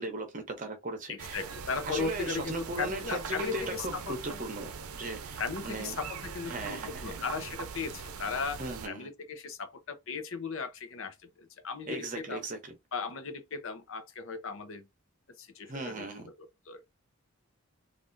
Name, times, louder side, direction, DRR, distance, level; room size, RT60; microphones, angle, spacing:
voice 1, 0.0-1.4 1.8-5.9 6.4-7.2 8.6-9.1 11.9-12.7 15.7-16.2, right 2 dB, 35° right, 0.8 m, -38 dB
voice 2, 1.1-4.1 5.4-8.6 8.9-12.4 12.9-14.8 15.4-16.8, left 5 dB, 65° left, 0.7 m, -37 dB
sound 1, 1.2-8.9, right 5 dB, 80° right, 0.5 m, -42 dB
3.4 x 2.5 x 2.6 m
head